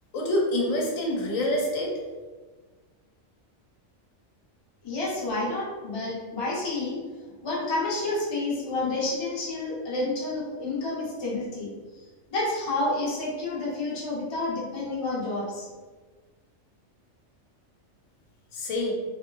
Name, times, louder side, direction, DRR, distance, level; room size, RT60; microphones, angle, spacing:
voice 1, 0.1-1.9 18.5-18.9, left 1 dB, 85° left, -1 dB, 1.0 m, -26 dB
voice 2, 4.8-7.0 7.4-11.7 12.3-15.7, left 2 dB, 35° left, -6 dB, 0.4 m, -29 dB
2.9 x 2.1 x 2.2 m, 1.3 s
omnidirectional pair, 1.4 m